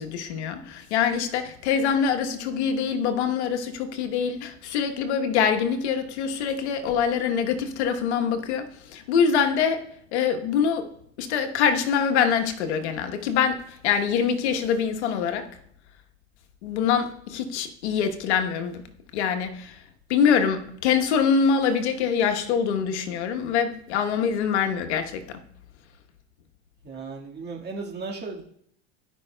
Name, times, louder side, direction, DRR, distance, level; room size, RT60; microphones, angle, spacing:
voice 1, 0.0-10.9 11.2-15.5 16.6-18.8 19.1-19.7 20.1-25.4, left 7 dB, 80° left, 1.2 m, -24 dB
voice 2, 26.8-28.4, right 4 dB, 30° right, 1.8 m, -35 dB
16.0 x 5.5 x 2.3 m
hypercardioid pair, 95°, 33 cm